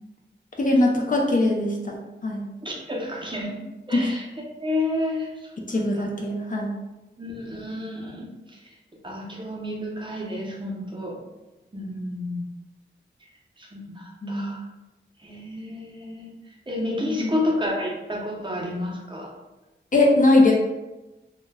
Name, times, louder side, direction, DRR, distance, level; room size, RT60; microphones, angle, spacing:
voice 1, 0.6-2.4 3.9-4.1 5.7-6.7 14.2-14.6 17.2-17.3 19.9-20.5, left 2 dB, 45° left, -1 dB, 0.4 m, -21 dB
voice 2, 2.6-3.6 3.9-4.2 4.6-6.1 7.2-8.6 9.0-11.2 11.7-12.4 13.6-14.6 15.2-16.3 16.7-19.3, left 1 dB, 25° right, -3 dB, 0.6 m, -30 dB
2.1 x 2.1 x 3.3 m, 1.0 s
wide cardioid pair, 95°, 20 cm